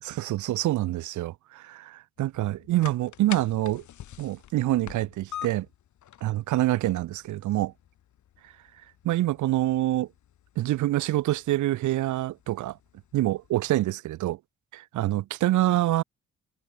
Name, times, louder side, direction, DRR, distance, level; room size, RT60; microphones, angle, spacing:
voice 1, 0.0-3.8 4.2-5.7 6.2-7.7 9.0-10.1 10.6-12.8 13.1-14.4 14.7-16.0, right 15 dB, 75° right, 0.8 m, -26 dB
sound 1, 2.2-13.9, left 11 dB, 70° left, 8.0 m, -47 dB
cardioid pair, 90°, 30 cm